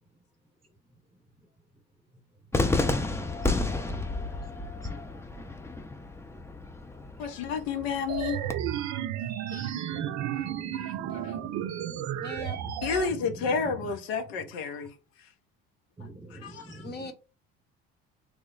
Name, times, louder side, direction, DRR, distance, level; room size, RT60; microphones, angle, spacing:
Cheering / Fireworks, 2.5-8.5, left 2 dB, 10° left, 0.4 m, -31 dB
voice 1, 7.2-8.4 9.5-9.7 10.7-11.3 12.8-14.9 16.3-16.9, left 5 dB, 80° left, 0.7 m, -31 dB
sound 1, 8.1-13.1, right 11 dB, 60° right, 0.5 m, -33 dB
voice 2, 9.6-12.7 13.1-13.9 16.0-17.1, right 2 dB, 15° right, 1.0 m, -44 dB
voice 3, 12.2-12.6 16.8-17.1, left 2 dB, 35° left, 0.7 m, -39 dB
3.1 x 2.0 x 3.8 m
hypercardioid pair, 65°, 31 cm